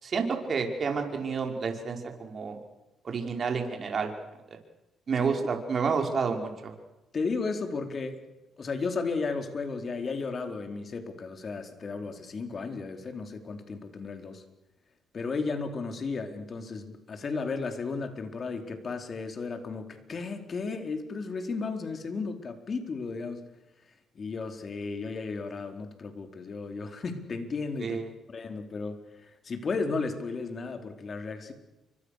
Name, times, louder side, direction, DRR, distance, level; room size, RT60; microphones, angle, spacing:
voice 1, 0.0-2.6 3.0-4.1 5.1-6.7 27.8-28.1, right 5 dB, 45° right, 3 dB, 5.4 m, -29 dB
voice 2, 7.1-8.3 8.6-14.4 15.1-23.4 24.1-28.0 28.3-31.5, left 4 dB, 45° left, 5 dB, 4.4 m, -34 dB
30.0 x 25.0 x 6.7 m, 1.0 s
cardioid pair, 90°, 0 cm